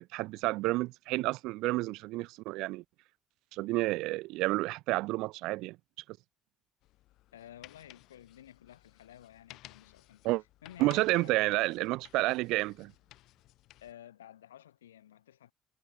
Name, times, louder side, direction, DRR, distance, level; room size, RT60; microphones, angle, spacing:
voice 1, 0.0-2.8 3.5-5.8 10.2-10.4 10.8-12.9, right 20 dB, 70° right, 1.2 m, -30 dB
sound 1, 6.8-13.9, left 16 dB, 65° left, 3.5 m, -57 dB
voice 2, 7.3-10.3 10.6-11.7 13.8-15.5, left 11 dB, 85° left, 7.4 m, -53 dB
hypercardioid pair, 50°, 0 cm